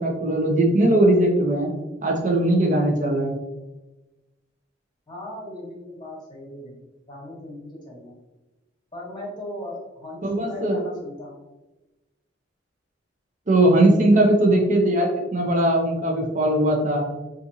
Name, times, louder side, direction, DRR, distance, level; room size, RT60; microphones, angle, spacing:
voice 1, 0.0-1.7 2.0-3.4 10.2-10.8 13.5-17.1, right 1 dB, 40° right, 1 dB, 0.7 m, -19 dB
voice 2, 5.1-6.8 7.1-8.2 8.9-11.4, left 1 dB, 20° left, -3 dB, 1.2 m, -38 dB
4.2 x 2.5 x 2.7 m, 1.1 s
head